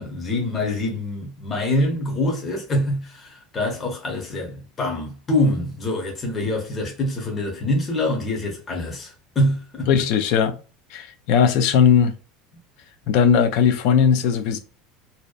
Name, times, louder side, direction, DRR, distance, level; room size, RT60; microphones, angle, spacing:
voice 1, 0.0-9.9, left 1 dB, 25° left, 0.7 m, -25 dB
voice 2, 9.9-10.6 10.9-12.1 13.1-14.6, left 7 dB, 60° left, 0.4 m, -18 dB
2.6 x 2.1 x 2.3 m
cardioid pair, 150°, 0 cm